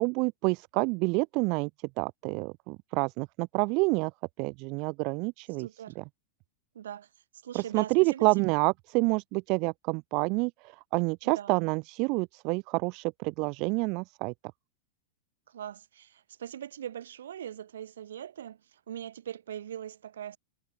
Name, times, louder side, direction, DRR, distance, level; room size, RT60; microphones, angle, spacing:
voice 1, 0.0-1.7 2.0-4.1 4.4-5.7 6.0-6.1 7.5-14.3, right 29 dB, 40° right, 1.5 m, -28 dB
voice 2, 5.6-6.0 6.7-7.1 7.4-8.5 11.2-11.7 15.5-20.4, right 10 dB, 65° right, 4.9 m, -41 dB
figure-of-eight pair, 95°, 0 cm